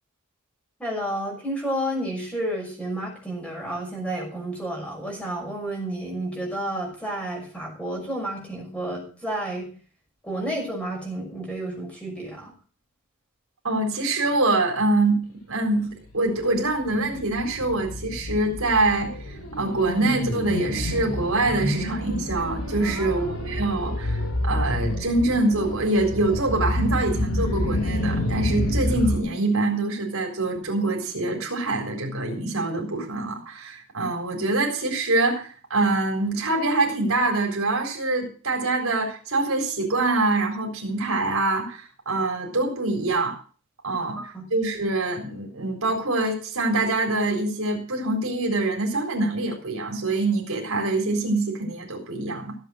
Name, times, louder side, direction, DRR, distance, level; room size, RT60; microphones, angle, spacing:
voice 1, 0.8-9.7 10.2-12.5 22.8-23.3 44.2-44.5, right 1 dB, 5° left, 0 dB, 6.1 m, -31 dB
voice 2, 13.6-43.4 43.8-52.5, right 2 dB, 75° right, 2 dB, 4.2 m, -25 dB
sound 1, 16.1-29.2, left 1 dB, 90° left, 3.1 m, -28 dB
16.0 x 8.1 x 6.4 m, 0.41 s
head